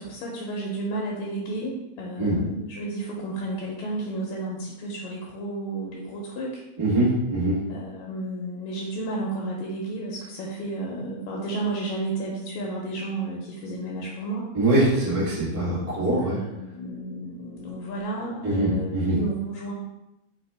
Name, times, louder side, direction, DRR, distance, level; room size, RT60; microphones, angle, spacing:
voice 1, 0.0-6.6 7.7-14.5 15.8-19.7, right 2 dB, 75° left, -2 dB, 1.9 m, -32 dB
voice 2, 6.8-7.6 14.5-16.4 18.4-19.2, right 1 dB, 25° right, -9 dB, 0.7 m, -23 dB
4.2 x 3.5 x 3.3 m, 0.92 s
omnidirectional pair, 3.4 m